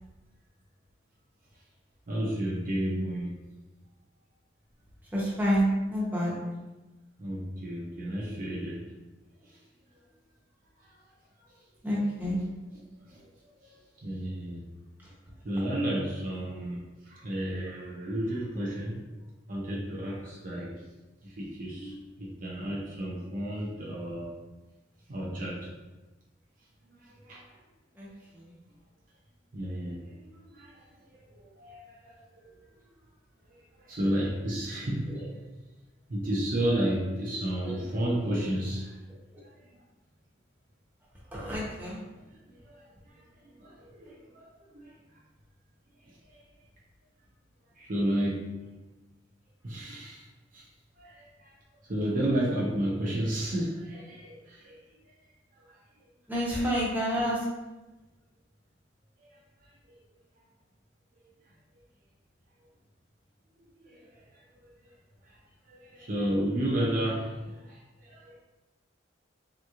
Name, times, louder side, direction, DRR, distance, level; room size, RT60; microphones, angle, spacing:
voice 1, 2.1-3.3 7.2-8.8 10.8-10.9 13.1-13.3 13.6-14.6 15.4-19.0 19.5-20.7 21.2-24.3 25.1-25.7 27.0-27.5 29.5-30.8 31.2-32.5 33.8-35.2 36.1-39.0 42.7-43.1 43.4-44.5 44.7-44.8 46.1-46.4 47.8-48.5 49.6-50.3 50.5-50.7 51.0-51.6 51.8-54.8 55.6-55.7 59.2-59.4 63.8-64.1 65.3-65.4 65.7-68.4, right 1 dB, 45° right, -4 dB, 0.5 m, -32 dB
voice 2, 5.1-6.3 11.8-12.4 21.8-22.0 28.0-28.1 28.3-28.5 35.1-35.2 37.6-37.7 41.3-42.0 56.3-57.4, equal, 10° right, -6 dB, 0.7 m, -28 dB
3.5 x 2.9 x 2.4 m, 1.1 s
head